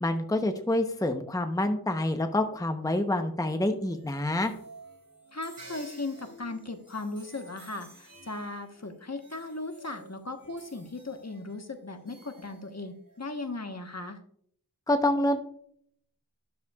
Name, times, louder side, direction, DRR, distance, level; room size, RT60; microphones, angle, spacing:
voice 1, 0.0-4.5 14.9-15.4, left 1 dB, 10° left, 6 dB, 0.8 m, -27 dB
sound 1, 3.7-13.2, right 2 dB, 60° right, 3.3 m, -52 dB
voice 2, 5.3-14.2, left 2 dB, 45° left, 6 dB, 1.2 m, -37 dB
12.0 x 7.9 x 2.4 m, 0.63 s
wide cardioid pair, 45°, 38 cm